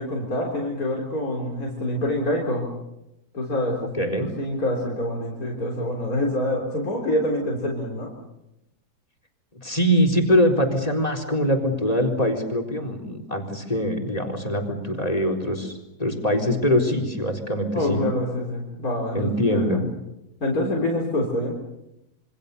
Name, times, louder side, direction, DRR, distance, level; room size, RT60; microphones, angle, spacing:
voice 1, 0.0-2.7 3.3-8.1 17.7-19.9 20.4-21.6, left 1 dB, 65° left, -1 dB, 4.4 m, -26 dB
voice 2, 3.9-4.3 9.6-18.0 19.1-19.8, equal, 25° left, 6 dB, 4.2 m, -23 dB
27.5 x 25.5 x 6.9 m, 0.90 s
omnidirectional pair, 1.6 m